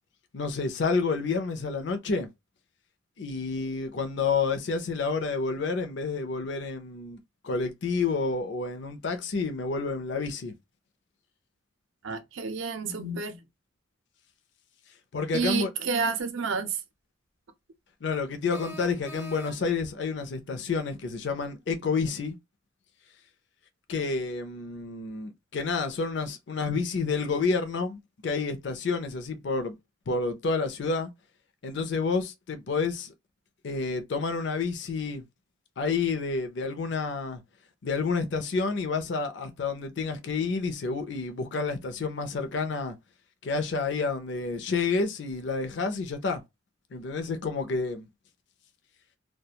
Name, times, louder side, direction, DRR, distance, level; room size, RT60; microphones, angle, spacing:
voice 1, 0.3-2.3 3.2-7.2 7.4-10.5 15.1-15.7 18.0-22.4 23.9-29.8 30.1-31.1 31.6-33.1 33.6-35.2 35.8-37.4 37.8-43.0 43.4-46.4 46.9-48.1, left 4 dB, 60° left, 0.5 m, -29 dB
voice 2, 12.0-13.4 15.3-16.8, right 4 dB, 70° right, 0.5 m, -29 dB
sound 1, 16.2-16.3 18.5-19.9, equal, 10° right, 0.4 m, -44 dB
2.3 x 2.2 x 2.7 m
head